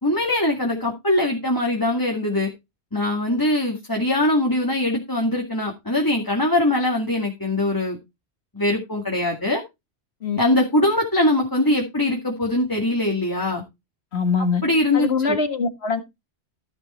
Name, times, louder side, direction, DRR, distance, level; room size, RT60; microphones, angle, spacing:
voice 1, 0.0-2.5 2.9-8.0 8.5-9.6 10.4-13.6 14.6-15.4, left 1 dB, 20° left, 2.2 m, -22 dB
voice 2, 14.1-14.6 14.9-16.0, left 4 dB, 65° left, 2.0 m, -23 dB
15.5 x 5.2 x 4.3 m
omnidirectional pair, 1.2 m